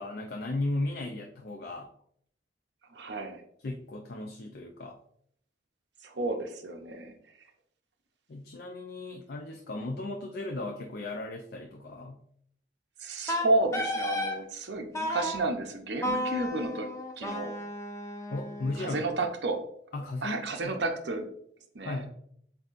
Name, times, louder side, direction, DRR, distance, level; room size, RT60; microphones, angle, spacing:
voice 1, 0.0-1.9 3.6-5.0 8.3-12.2 18.3-19.1 19.9-20.8 21.8-22.1, left 2 dB, 55° left, 2 dB, 0.5 m, -36 dB
voice 2, 2.9-3.4 6.0-7.2 13.0-16.9 17.2-17.6 18.8-19.6 20.2-21.3 21.7-22.1, right 2 dB, 70° right, 4 dB, 0.7 m, -31 dB
Wind instrument woodwind instrument, 13.3-14.4 14.9-15.4 16.0-19.0, left 1 dB, 15° left, 0.6 m, -33 dB
7.7 x 2.7 x 2.5 m, 0.66 s
head